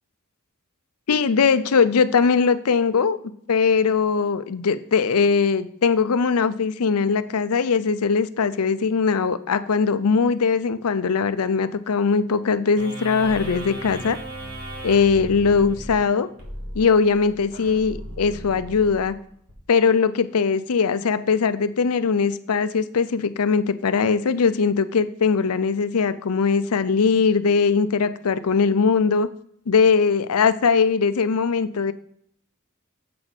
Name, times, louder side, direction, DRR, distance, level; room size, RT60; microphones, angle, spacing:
voice 1, 1.1-3.2 3.5-14.2 14.8-16.3 16.7-19.1 19.7-29.3 29.7-31.9, left 5 dB, 85° left, 12 dB, 0.6 m, -20 dB
sound 1, 12.8-19.5, right 1 dB, 80° right, 2.9 m, -36 dB
7.6 x 4.1 x 6.1 m, 0.65 s
head